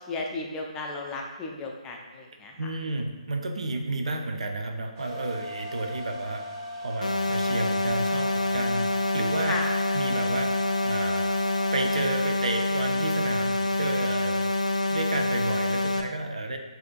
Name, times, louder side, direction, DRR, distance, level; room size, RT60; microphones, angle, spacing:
voice 1, 0.1-2.6 9.5-9.7, left 3 dB, 15° left, 0 dB, 0.4 m, -34 dB
voice 2, 2.6-6.4 6.8-8.9 9.1-9.6 9.9-10.5 10.8-11.3 11.7-14.5 14.8-16.6, right 2 dB, 60° right, 4 dB, 0.5 m, -31 dB
sound 1, 5.0-12.0, left 1 dB, 25° right, 0.8 m, -38 dB
sound 2, 7.0-16.0, left 2 dB, 80° left, 0.4 m, -26 dB
5.8 x 2.6 x 2.5 m, 1.3 s
figure-of-eight pair, 140°, 4 cm